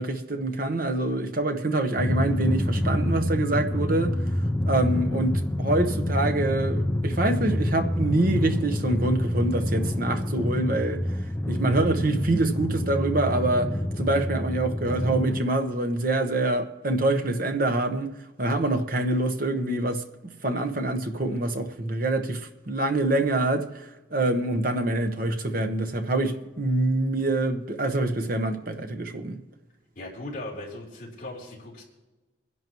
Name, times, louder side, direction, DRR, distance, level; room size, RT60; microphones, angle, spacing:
voice 1, 0.0-4.1 4.6-11.0 11.5-18.1 18.4-29.4, right 2 dB, 45° right, 1.1 m, -25 dB
Drum, 2.0-15.4, left 1 dB, 10° left, 0.4 m, -27 dB
voice 2, 30.0-31.8, left 1 dB, 40° left, 3.7 m, -38 dB
24.0 x 11.0 x 3.1 m
head